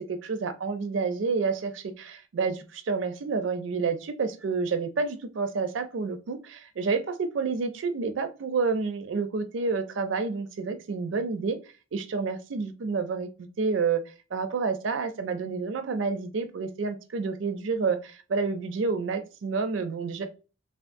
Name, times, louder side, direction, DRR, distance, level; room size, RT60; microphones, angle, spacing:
voice 1, 0.1-11.6 11.9-14.0 14.3-20.3, right 4 dB, 75° right, 0.4 m, -29 dB
3.5 x 2.4 x 2.5 m
head